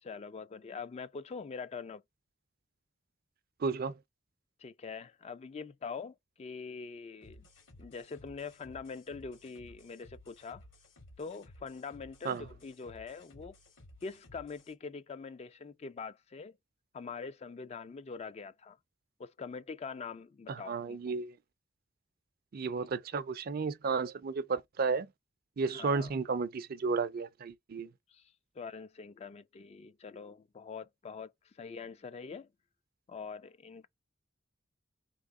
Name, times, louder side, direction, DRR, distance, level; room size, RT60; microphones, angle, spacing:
voice 1, 0.0-2.0 4.6-7.5 7.8-10.6 11.2-13.5 14.0-16.6 16.9-18.8 19.2-21.2 25.6-26.1 28.1-32.5 33.1-33.9, left 5 dB, 30° left, 0.3 m, -44 dB
voice 2, 3.6-4.0 12.2-12.5 20.5-21.3 22.5-25.1 25.6-27.9, right 4 dB, 50° right, 0.4 m, -33 dB
sound 1, 7.2-14.7, left 1 dB, 75° left, 2.2 m, -57 dB
3.6 x 2.9 x 3.6 m
head